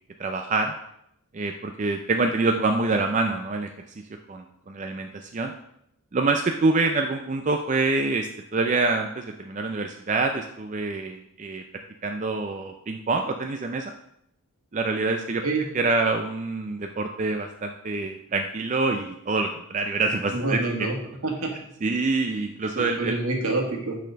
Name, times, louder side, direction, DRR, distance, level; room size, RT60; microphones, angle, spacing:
voice 1, 0.2-0.7 1.3-3.7 4.3-5.5 6.1-11.6 12.0-13.9 14.7-15.4 15.7-20.9 21.8-23.2, right 3 dB, 35° right, 4 dB, 0.4 m, -26 dB
voice 2, 20.3-21.0 21.2-21.5 22.7-24.0, right 2 dB, 75° right, 1 dB, 1.7 m, -27 dB
6.6 x 4.2 x 6.2 m, 0.76 s
head